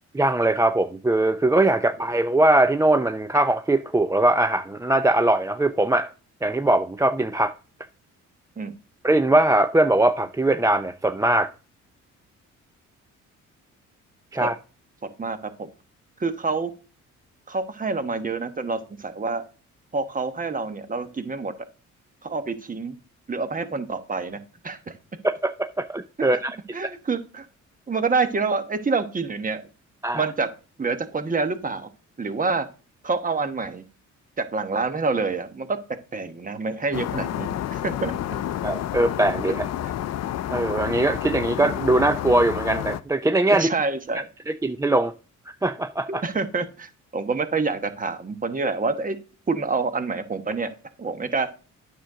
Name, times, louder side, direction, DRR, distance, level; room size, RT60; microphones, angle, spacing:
voice 1, 0.1-6.1 6.4-7.5 9.0-11.5 14.3-14.5 25.2-26.4 30.0-30.2 38.6-39.6 40.5-43.7 44.6-45.1 45.5-46.2, right 2 dB, 10° right, 0.4 m, -21 dB
voice 2, 15.2-15.7 16.2-16.7 17.5-19.4 19.9-21.5 22.2-22.9 23.3-24.9 26.2-26.4 26.7-27.5 27.9-29.6 30.1-30.5 30.8-31.9 32.2-32.7 33.0-33.8 34.4-38.2 39.8-39.9 43.5-44.3 46.1-49.2 49.5-50.7 51.0-51.5, right 4 dB, 25° right, 1.2 m, -27 dB
sound 1, 36.9-43.0, left 11 dB, 60° left, 0.5 m, -30 dB
9.1 x 6.5 x 3.8 m
cardioid pair, 90°, 30 cm